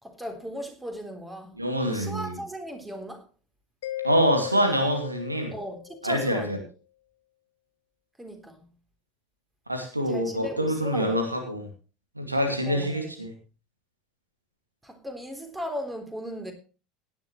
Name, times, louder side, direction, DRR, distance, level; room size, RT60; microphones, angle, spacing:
voice 1, 0.0-1.6 1.9-3.2 5.5-6.5 8.2-8.7 10.1-11.2 12.6-13.2 14.8-16.5, equal, 10° right, 5 dB, 3.6 m, -37 dB
voice 2, 1.6-2.4 4.0-5.5 6.0-6.6 9.7-11.7 12.2-13.3, equal, 90° right, 5 dB, 2.3 m, -25 dB
Mallet percussion, 3.8-6.4, left 15 dB, 65° left, 0.9 m, -37 dB
17.5 x 10.5 x 3.2 m, 0.34 s
figure-of-eight pair, 75°, 0 cm